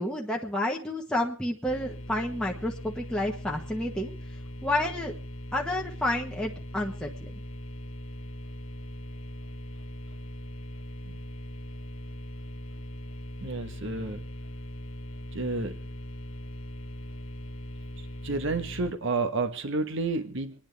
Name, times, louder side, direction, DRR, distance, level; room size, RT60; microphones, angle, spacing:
voice 1, 0.0-4.1 4.6-5.2 5.5-7.1, left 1 dB, 5° left, -1 dB, 1.2 m, -30 dB
sound 1, 1.6-18.9, left 1 dB, 75° left, 1.4 m, -40 dB
voice 2, 13.4-14.2 15.3-15.7 18.2-20.5, right 3 dB, 60° right, 9 dB, 1.3 m, -30 dB
27.0 x 10.0 x 3.5 m, 0.41 s
head